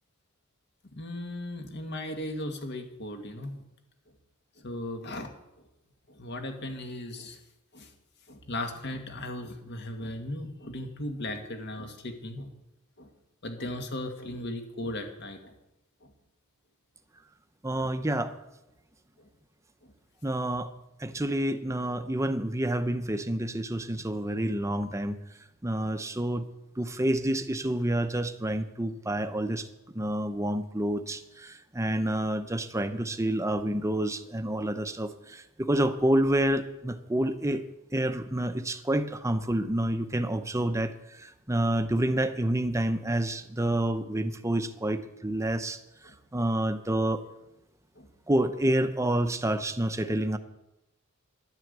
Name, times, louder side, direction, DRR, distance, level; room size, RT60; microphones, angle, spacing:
voice 1, 0.9-3.6 4.6-5.3 6.1-7.4 7.7-7.9 8.3-12.5 13.0-13.1 13.4-15.5 17.8-17.9 19.2-19.3 21.1-21.2 46.1-46.2 48.0-48.1, left 1 dB, 55° left, 5 dB, 2.0 m, -37 dB
voice 2, 17.6-18.3 20.2-20.7 21.0-25.2 25.6-26.5 26.8-29.7 29.9-37.6 37.9-40.9 41.2-45.8 46.3-47.2 48.3-50.4, right 1 dB, 15° right, 9 dB, 0.8 m, -28 dB
11.5 x 9.5 x 8.1 m, 0.92 s
head